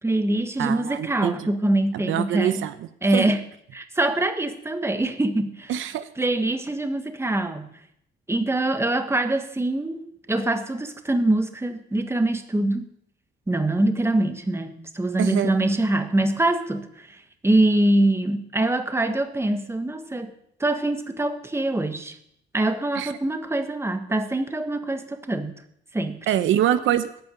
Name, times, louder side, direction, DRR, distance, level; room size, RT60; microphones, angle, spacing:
voice 1, 0.0-2.7 3.0-3.4 3.7-5.7 6.2-7.7 8.3-12.9 13.5-17.2 17.4-20.3 20.6-22.1 22.5-25.6 25.9-26.2, right 1 dB, 15° right, 7 dB, 1.5 m, -24 dB
voice 2, 0.6-1.3 1.9-2.7 3.1-3.3 5.7-6.1 15.2-15.5 22.9-23.1 26.3-27.1, right 11 dB, 80° right, 12 dB, 0.8 m, -24 dB
14.0 x 5.9 x 9.2 m, 0.70 s
cardioid pair, 90°, 20 cm